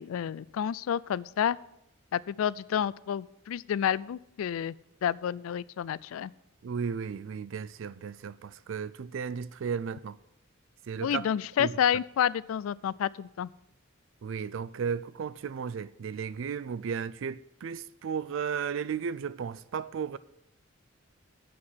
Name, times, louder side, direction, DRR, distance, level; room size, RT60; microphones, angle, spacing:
voice 1, 0.0-1.6 2.1-4.7 5.0-6.3 11.0-13.5, left 9 dB, 85° left, 0.3 m, -29 dB
voice 2, 6.6-10.2 10.9-11.3 11.6-11.7 14.2-20.2, right 6 dB, 65° right, 0.4 m, -34 dB
8.5 x 5.8 x 7.7 m
head